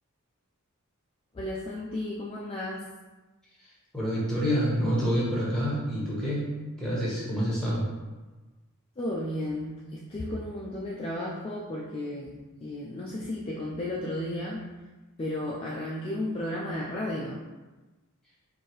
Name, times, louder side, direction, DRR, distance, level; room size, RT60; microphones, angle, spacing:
voice 1, 1.3-2.8 9.0-14.7 15.2-17.4, left 1 dB, 25° left, -5 dB, 0.4 m, -33 dB
voice 2, 3.9-6.5 6.8-7.8, equal, 5° left, -7 dB, 1.1 m, -27 dB
4.5 x 2.6 x 3.0 m, 1.2 s
head